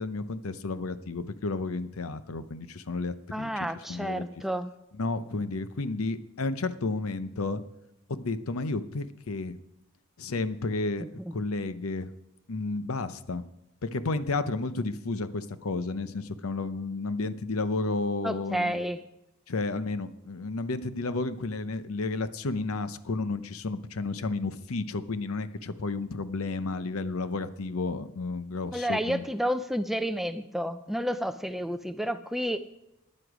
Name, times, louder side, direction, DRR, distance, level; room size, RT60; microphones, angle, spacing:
voice 1, 0.0-3.5 3.9-4.3 5.0-7.6 8.1-9.6 10.2-11.1 11.3-12.1 12.5-13.4 13.8-18.8 19.5-29.2, left 3 dB, 75° left, 12 dB, 0.7 m, -32 dB
voice 2, 3.3-4.7 11.0-11.4 18.2-19.0 28.7-32.8, equal, ahead, 10 dB, 0.4 m, -31 dB
13.0 x 9.8 x 4.9 m, 0.88 s
head